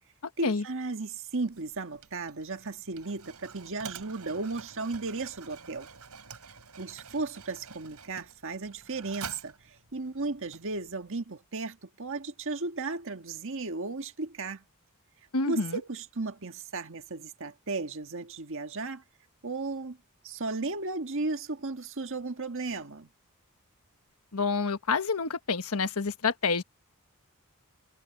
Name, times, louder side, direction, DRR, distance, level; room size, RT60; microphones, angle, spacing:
voice 1, 0.4-5.9 6.8-14.6 15.5-19.0 19.4-20.0 20.2-23.1, right 3 dB, 60° right, 1.6 m, -35 dB
Mechanisms, 1.4-11.1, right 6 dB, 85° right, 6.0 m, -48 dB
voice 2, 15.3-15.8 24.3-26.6, left 4 dB, 75° left, 1.3 m, -28 dB
head